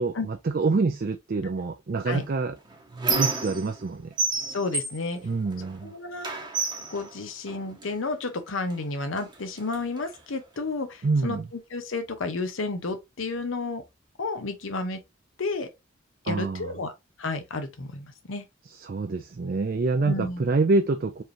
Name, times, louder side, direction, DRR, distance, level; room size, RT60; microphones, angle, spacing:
voice 1, 0.0-2.6 3.1-4.1 5.2-5.9 11.0-11.5 16.3-16.7 18.8-21.2, right 3 dB, 50° right, 0.4 m, -26 dB
Squeak, 2.1-3.9 4.2-5.8 6.2-7.9 8.7-8.8 9.2-10.2, right 4 dB, 25° right, 0.9 m, -31 dB
voice 2, 4.5-5.2 5.8-6.4 6.9-13.8 14.2-15.0 15.4-15.7 16.2-16.9 17.2-18.4 20.0-20.4, left 3 dB, 85° left, 0.8 m, -31 dB
4.6 x 3.2 x 2.8 m
head